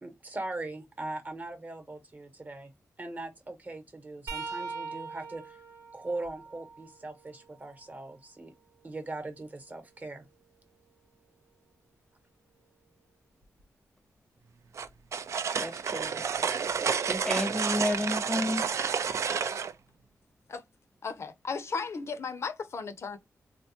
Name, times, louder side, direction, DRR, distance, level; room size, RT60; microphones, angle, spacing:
voice 1, 0.0-2.7 3.0-5.6 5.9-8.5 8.8-10.2, right 2 dB, 30° right, 0.9 m, -40 dB
sound 1, 4.3-8.0 8.6-10.5 13.4-13.6 14.8-15.0 16.3-16.4, right 4 dB, 80° right, 0.9 m, -44 dB
sound 2, 14.8-19.7, right 6 dB, 60° right, 0.3 m, -30 dB
voice 2, 15.6-16.2 17.1-18.6, left 1 dB, 5° left, 0.7 m, -31 dB
voice 3, 21.0-23.2, left 5 dB, 55° left, 0.5 m, -35 dB
4.0 x 2.2 x 2.7 m
wide cardioid pair, 130°, 6 cm